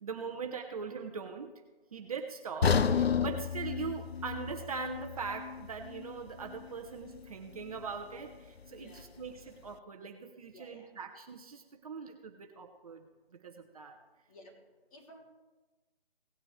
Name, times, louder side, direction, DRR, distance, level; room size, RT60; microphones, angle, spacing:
voice 1, 0.0-1.5 1.9-14.0, right 5 dB, 35° right, 4 dB, 0.9 m, -41 dB
sound 1, 2.6-6.7 7.0-7.2 7.8-7.9, left 6 dB, 90° left, 0.6 m, -31 dB
voice 2, 8.7-9.2 10.5-10.9 14.3-14.6 14.9-15.2, equal, 35° left, -2 dB, 3.3 m, -55 dB
17.5 x 9.4 x 3.3 m, 1.2 s
figure-of-eight pair, 150°, 30 cm